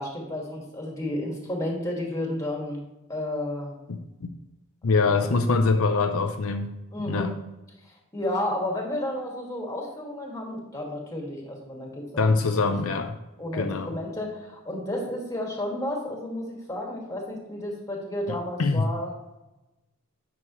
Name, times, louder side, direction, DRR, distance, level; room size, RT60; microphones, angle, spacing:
voice 1, 0.0-2.8 3.1-3.7 5.1-5.6 6.9-7.3 7.8-12.7 13.4-19.1, left 1 dB, 15° left, -1 dB, 2.0 m, -32 dB
voice 2, 3.9-4.3 4.8-6.7 7.1-7.3 12.2-13.2 13.5-13.9 18.3-18.9, left 3 dB, 75° left, 6 dB, 0.6 m, -24 dB
9.8 x 6.2 x 3.1 m, 0.99 s
head